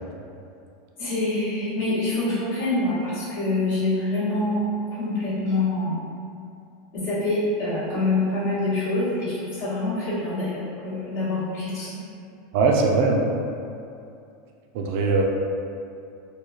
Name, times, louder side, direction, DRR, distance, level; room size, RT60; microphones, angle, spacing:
voice 1, 1.0-6.0 6.9-11.9, left 2 dB, 60° left, -11 dB, 0.8 m, -25 dB
voice 2, 12.5-13.3 14.7-15.2, right 3 dB, 55° right, 1 dB, 0.3 m, -20 dB
3.0 x 2.1 x 2.4 m, 2.5 s
supercardioid pair, 165°, 0 cm